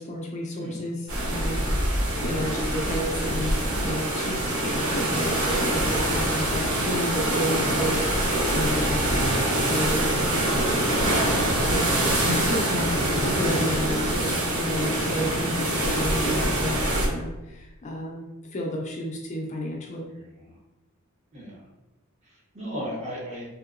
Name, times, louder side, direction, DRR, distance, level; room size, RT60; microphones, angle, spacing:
voice 1, 0.0-3.5 3.8-9.2 9.6-10.1 10.5-10.9 11.7-20.1, left 1 dB, 35° left, 0 dB, 0.4 m, -32 dB
sound 1, 1.1-17.1, right 1 dB, 75° right, 0.9 m, -24 dB
sound 2, 11.2-16.9, left 1 dB, 50° right, 0.6 m, -41 dB
voice 2, 16.2-16.6 20.1-20.5 21.3-21.5 22.2-23.5, equal, 30° right, -4 dB, 1.0 m, -36 dB
3.5 x 2.7 x 2.4 m, 1.0 s
head